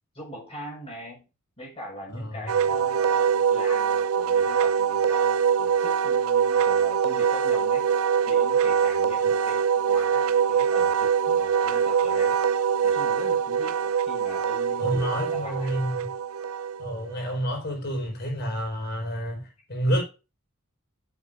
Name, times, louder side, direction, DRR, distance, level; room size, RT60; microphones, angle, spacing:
voice 1, 0.1-1.3 1.6-7.9 8.3-12.4 12.8-15.7, left 1 dB, 25° left, 4.7 m, -41 dB
Wind instrument woodwind instrument, 2.5-17.2, right 7 dB, 85° right, 0.5 m, -23 dB
voice 2, 14.8-16.1 16.8-20.0, equal, 50° left, 4.7 m, -29 dB
10.5 x 8.0 x 2.4 m
head